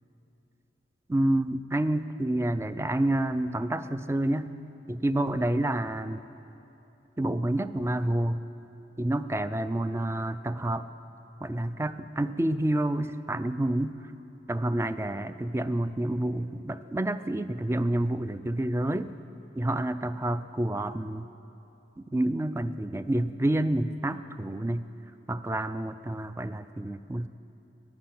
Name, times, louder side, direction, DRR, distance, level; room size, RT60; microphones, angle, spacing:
voice 1, 1.1-4.5 4.9-6.2 7.2-8.4 9.0-10.8 11.4-13.9 14.5-19.1 19.6-21.3 22.0-24.8 25.3-27.3, right 1 dB, 15° right, 13 dB, 0.3 m, -28 dB
14.5 x 11.0 x 8.7 m, 2.9 s
head